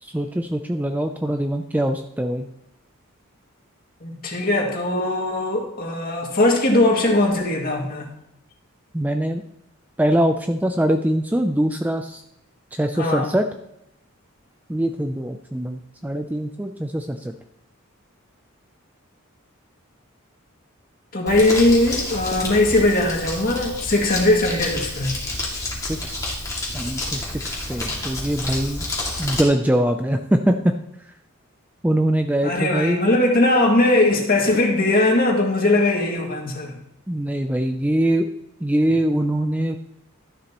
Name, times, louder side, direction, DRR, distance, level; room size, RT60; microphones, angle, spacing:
voice 1, 0.0-2.5 8.9-9.4 10.0-12.2 12.7-13.5 14.7-17.3 25.9-26.3 26.6-28.8 29.2-30.7 31.8-33.0 37.1-38.3 38.6-39.8, right 1 dB, 10° right, 6 dB, 0.4 m, -23 dB
voice 2, 4.0-8.1 13.0-13.3 21.1-25.1 32.4-36.7, left 2 dB, 45° left, 0 dB, 2.2 m, -20 dB
Crumpling crinkling, 21.3-29.4, left 2 dB, 15° left, 2.2 m, -29 dB
12.5 x 11.0 x 3.0 m, 0.80 s
head